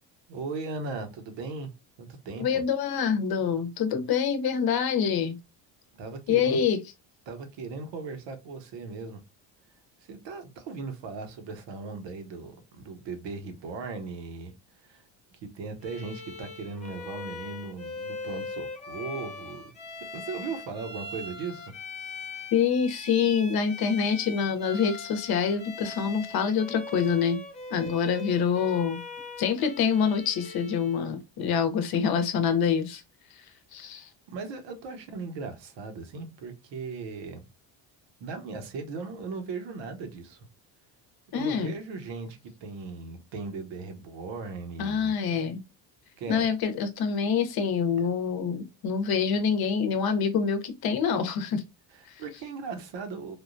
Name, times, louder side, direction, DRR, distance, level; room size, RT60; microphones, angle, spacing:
voice 1, 0.3-1.7 2.0-2.6 6.0-6.6 7.3-9.2 10.0-15.0 15.3-21.7 33.7-37.5 38.2-40.5 41.3-45.1 46.2-46.5 51.9-53.4, right 4 dB, 70° right, 1.0 m, -38 dB
voice 2, 2.4-5.4 6.3-6.8 22.5-27.4 27.7-29.0 29.4-33.0 33.7-34.1 41.3-41.7 44.8-45.6 46.3-51.6 52.1-52.2, left 6 dB, 55° left, 0.8 m, -26 dB
Bowed string instrument, 15.8-31.0, left 3 dB, 15° left, 1.1 m, -41 dB
3.5 x 2.2 x 2.5 m
cardioid pair, 115°, 45 cm